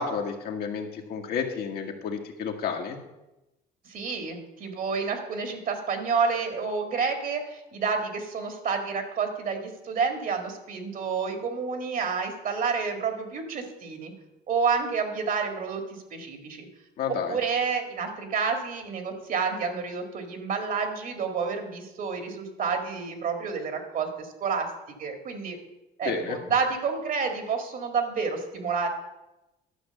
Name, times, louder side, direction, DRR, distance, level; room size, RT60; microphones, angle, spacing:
voice 1, 0.0-3.0 17.0-17.4 26.0-26.4, left 6 dB, 65° left, 3 dB, 1.7 m, -31 dB
voice 2, 3.9-14.1 14.5-15.8 16.1-16.7 17.3-24.7 25.0-25.6 26.0-28.9, right 5 dB, 55° right, 6 dB, 1.9 m, -29 dB
11.5 x 6.1 x 6.9 m, 0.97 s
cardioid pair, 110°, 17 cm